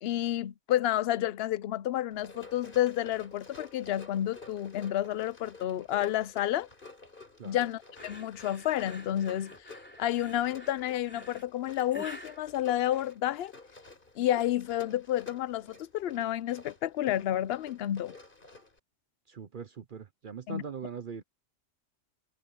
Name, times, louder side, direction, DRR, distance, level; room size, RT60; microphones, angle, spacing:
voice 1, 0.0-6.7 7.4-9.6 10.0-13.5 14.2-18.1 20.5-20.6, left 12 dB, 65° left, 0.7 m, -30 dB
Run, 2.1-18.8, left 3 dB, 45° left, 4.0 m, -52 dB
sound 1, 8.0-13.5, left 1 dB, 10° left, 3.1 m, -48 dB
voice 2, 19.3-21.2, right 6 dB, 50° right, 0.9 m, -41 dB
omnidirectional pair, 1.3 m